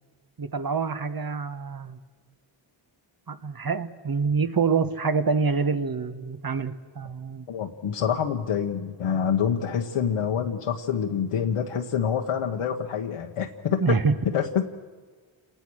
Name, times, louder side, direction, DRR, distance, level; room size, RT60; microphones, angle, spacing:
voice 1, 0.4-2.0 3.3-7.5 13.8-14.1, right 5 dB, 45° right, 10 dB, 1.6 m, -26 dB
voice 2, 7.5-14.0 14.2-14.6, left 8 dB, 85° left, 2 dB, 1.6 m, -26 dB
28.5 x 19.5 x 6.5 m, 1.5 s
cardioid pair, 80°, 50 cm